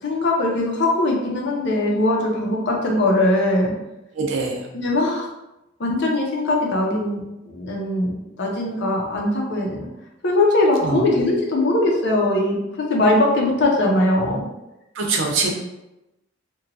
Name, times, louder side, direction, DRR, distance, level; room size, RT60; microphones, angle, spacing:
voice 1, 0.0-3.7 4.7-5.3 5.8-9.9 10.2-12.6 12.9-14.5, left 1 dB, 60° left, -1 dB, 0.6 m, -20 dB
voice 2, 4.2-4.6 10.8-11.0 15.0-15.5, right 4 dB, 70° right, 1 dB, 0.5 m, -22 dB
2.9 x 2.2 x 2.6 m, 0.94 s
head